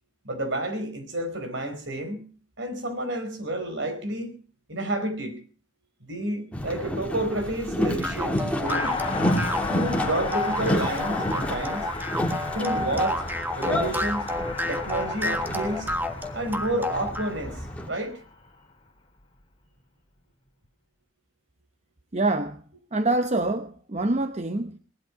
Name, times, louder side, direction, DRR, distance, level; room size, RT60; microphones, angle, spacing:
voice 1, 0.2-2.2 2.6-4.3 4.7-5.4 6.0-8.9 9.7-11.9 12.5-13.2 13.6-14.3 14.7-15.9 16.3-17.6 17.9-18.2, right 1 dB, 60° right, 4.5 m, -30 dB
Boat Water vehicle, 6.5-17.9, equal, 5° left, 2.6 m, -30 dB
sound 1, 8.0-17.3, left 1 dB, 10° right, 1.5 m, -30 dB
Car passing by, 8.7-18.6 18.9-19.0, left 4 dB, 25° left, 2.9 m, -36 dB
voice 2, 22.1-22.6 22.9-24.8, right 2 dB, 35° right, 0.8 m, -25 dB
19.0 x 12.0 x 6.0 m
head